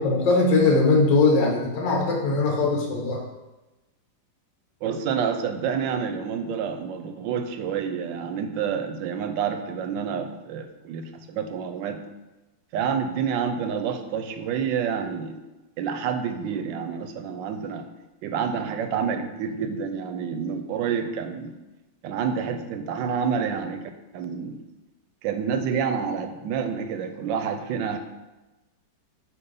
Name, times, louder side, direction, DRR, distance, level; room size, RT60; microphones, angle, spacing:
voice 1, 0.0-3.2, left 3 dB, 65° left, 0 dB, 1.7 m, -20 dB
voice 2, 4.8-12.0 12.7-15.4 15.8-17.9 18.2-21.5 22.0-24.6 25.2-28.0, right 7 dB, 75° right, 7 dB, 1.2 m, -28 dB
7.3 x 2.6 x 5.4 m, 1.1 s
omnidirectional pair, 2.1 m